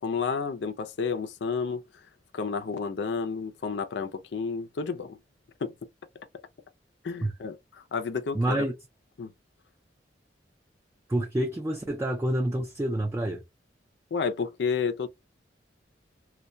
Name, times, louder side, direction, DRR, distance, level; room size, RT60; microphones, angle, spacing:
voice 1, 0.0-1.8 2.3-5.2 5.6-5.7 7.0-8.7 9.2-9.3 14.1-15.1, left 5 dB, 75° left, 0.4 m, -31 dB
voice 2, 8.3-8.7 11.1-13.4, right 1 dB, 15° right, 0.3 m, -28 dB
2.2 x 2.2 x 2.6 m
head